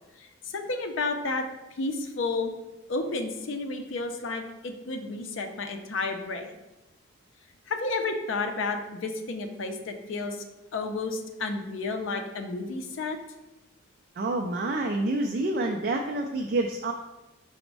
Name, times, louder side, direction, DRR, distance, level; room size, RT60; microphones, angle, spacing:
voice 1, 0.5-1.4 1.8-2.5 2.9-6.5 7.7-10.4 10.7-13.2, left 3 dB, 70° left, 5 dB, 0.5 m, -31 dB
voice 2, 14.2-16.9, right 2 dB, 45° right, 2 dB, 0.3 m, -28 dB
5.0 x 2.1 x 4.6 m, 0.99 s
head